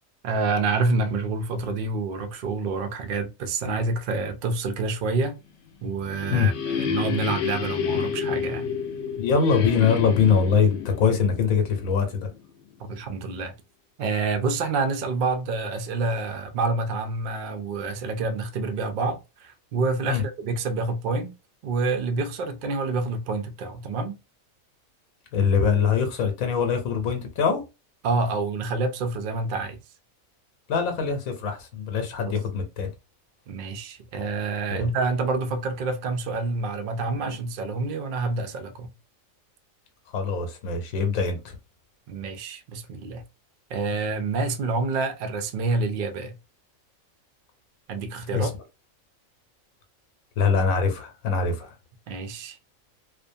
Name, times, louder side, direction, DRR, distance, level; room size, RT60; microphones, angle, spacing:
voice 1, 0.2-5.4 5.8-8.7 12.8-13.5 14.0-21.3 21.6-24.2 28.0-29.8 32.3-32.4 33.5-38.9 42.1-43.2 43.7-46.4 47.9-48.5 52.1-52.6, right 3 dB, 75° right, 0.4 m, -27 dB
sound 1, 5.7-12.4, left 7 dB, 65° left, 0.8 m, -30 dB
voice 2, 9.2-12.3 20.1-20.2 25.3-27.6 30.7-32.9 34.7-34.9 40.1-41.6 48.3-48.5 50.4-51.7, left 6 dB, 85° left, 1.1 m, -23 dB
2.5 x 2.1 x 2.5 m
omnidirectional pair, 1.4 m